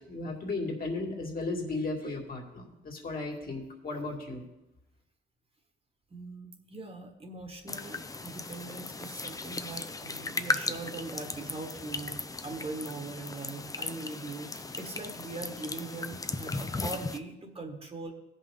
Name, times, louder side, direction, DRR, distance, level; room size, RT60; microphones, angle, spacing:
voice 1, 0.1-4.4, left 2 dB, 45° left, 0 dB, 2.2 m, -35 dB
voice 2, 6.1-12.1 12.4-18.1, right 3 dB, 30° right, 3 dB, 1.5 m, -41 dB
sound 1, 7.7-17.2, left 3 dB, 15° left, 0.6 m, -37 dB
16.0 x 5.4 x 3.8 m, 0.94 s
cardioid pair, 90°, 20 cm